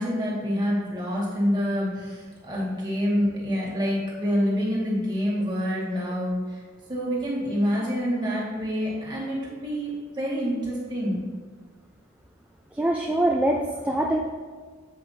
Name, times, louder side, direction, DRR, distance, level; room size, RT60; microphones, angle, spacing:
voice 1, 0.0-6.4 6.9-11.2, equal, 25° right, -6 dB, 1.9 m, -27 dB
voice 2, 12.8-14.2, right 1 dB, 5° right, 1 dB, 0.3 m, -24 dB
7.9 x 5.0 x 2.8 m, 1.5 s
head